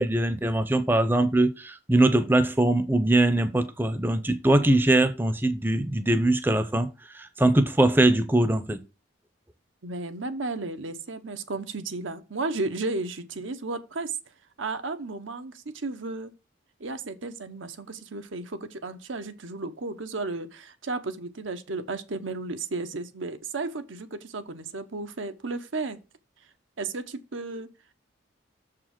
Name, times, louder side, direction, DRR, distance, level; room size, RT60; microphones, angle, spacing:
voice 1, 0.0-6.9 7.1-8.8, right 1 dB, 10° right, 0.6 m, -22 dB
voice 2, 9.8-14.2 14.6-16.3 16.8-26.0 26.4-26.5 26.8-27.7, right 3 dB, 85° right, 0.9 m, -33 dB
6.9 x 4.9 x 5.8 m
head